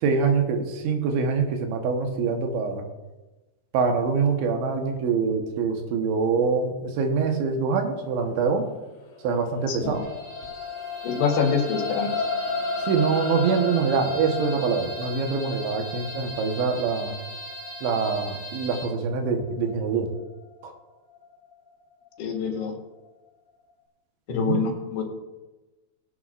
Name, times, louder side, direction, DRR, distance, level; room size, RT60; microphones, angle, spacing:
voice 1, 0.0-2.8 3.7-8.7 9.2-10.0 12.9-17.1 17.8-20.1 20.6-20.7 24.3-24.6, right 5 dB, 80° right, 4 dB, 3.5 m, -24 dB
sound 1, 9.0-21.5 22.1-22.2, left 4 dB, 60° left, 2.9 m, -34 dB
voice 2, 9.7-10.0 11.0-12.1 22.2-22.7 24.3-25.0, left 5 dB, 80° left, 0 dB, 4.2 m, -25 dB
sound 2, 9.8-18.9, equal, 55° right, 4.4 m, -40 dB
21.0 x 9.4 x 2.5 m, 1.1 s
omnidirectional pair, 5.3 m